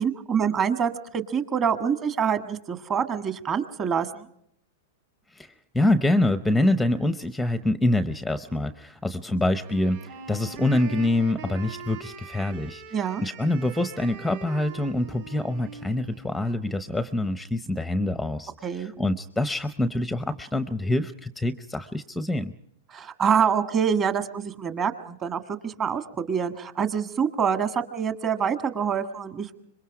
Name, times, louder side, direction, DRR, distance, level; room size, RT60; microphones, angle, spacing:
voice 1, 0.0-4.2 12.9-13.2 18.6-18.9 22.9-29.5, right 7 dB, 25° right, 9 dB, 1.6 m, -26 dB
voice 2, 5.3-10.0 10.3-12.8 13.2-22.5, left 1 dB, 5° left, 12 dB, 0.7 m, -25 dB
Wind instrument woodwind instrument, 9.6-17.4, right 5 dB, 65° right, 6.1 m, -42 dB
25.5 x 22.5 x 4.9 m, 0.71 s
hypercardioid pair, 135°, 0 cm